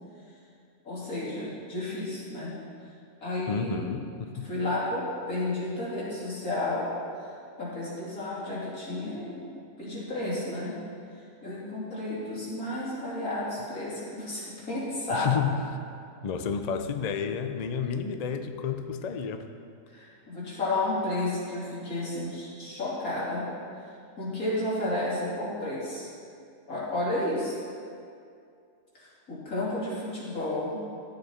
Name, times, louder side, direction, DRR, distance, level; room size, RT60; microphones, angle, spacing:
voice 1, 0.8-2.6 3.2-3.9 4.4-6.9 7.6-9.4 9.8-10.8 11.4-15.3 19.9-23.5 24.2-26.1 26.7-27.6 28.9-30.8, left 2 dB, 85° left, -8 dB, 3.3 m, -32 dB
voice 2, 3.5-4.5 15.1-15.5 16.2-19.5, left 7 dB, 65° left, 8 dB, 0.4 m, -30 dB
12.5 x 7.9 x 4.3 m, 2.4 s
omnidirectional pair, 1.5 m